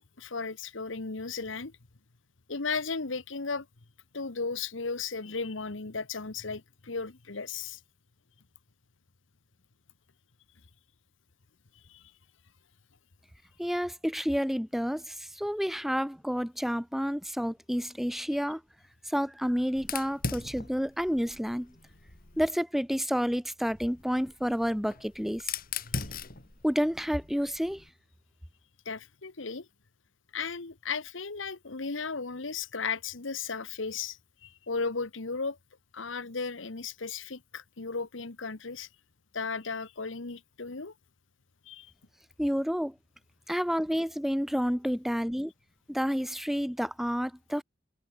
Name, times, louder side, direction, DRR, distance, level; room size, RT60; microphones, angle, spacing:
voice 1, 0.0-1.7 2.5-3.7 4.1-7.8 11.9-12.0 25.9-26.0 28.8-29.7 30.3-35.6 35.9-38.9 39.3-40.9 41.7-41.9, left 4 dB, 70° left, 1.3 m, -35 dB
voice 2, 13.6-18.6 19.1-21.7 22.4-25.5 26.6-27.8 42.4-42.9 43.5-45.5 45.9-47.6, equal, ahead, 2.0 m, -30 dB
Fire, 19.8-22.5 23.7-27.9, left 5 dB, 45° left, 2.5 m, -40 dB
head